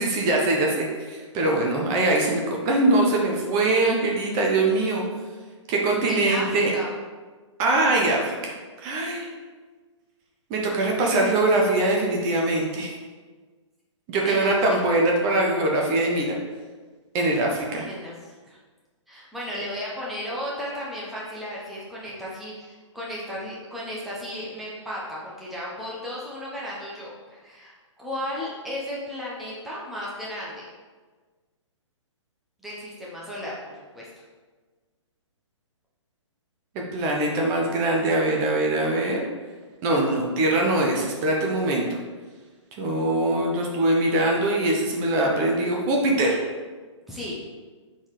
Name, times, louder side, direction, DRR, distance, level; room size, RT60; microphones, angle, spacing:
voice 1, 0.0-5.0 5.7-6.7 7.6-9.3 10.5-12.9 14.1-16.4 17.1-17.9 36.7-39.2 39.8-41.8 42.8-46.4, right 2 dB, 25° right, 0 dB, 1.0 m, -22 dB
voice 2, 6.0-6.9 14.2-14.6 14.9-15.0 17.8-18.6 19.1-30.7 32.6-34.1 47.1-47.4, equal, ahead, -6 dB, 0.9 m, -34 dB
6.1 x 4.0 x 4.8 m, 1.4 s
hypercardioid pair, 140°, 16 cm